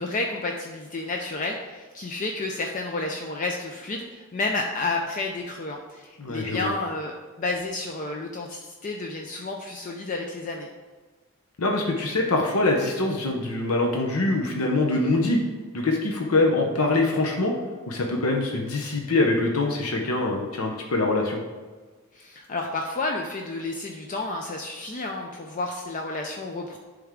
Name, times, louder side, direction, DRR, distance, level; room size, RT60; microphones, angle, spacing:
voice 1, 0.0-10.7 22.1-26.8, left 2 dB, 35° left, 2 dB, 0.4 m, -31 dB
voice 2, 6.2-6.7 11.6-15.4 15.7-17.5 17.9-21.4, left 2 dB, 75° left, 1 dB, 0.8 m, -24 dB
10.5 x 3.5 x 3.6 m, 1.4 s
head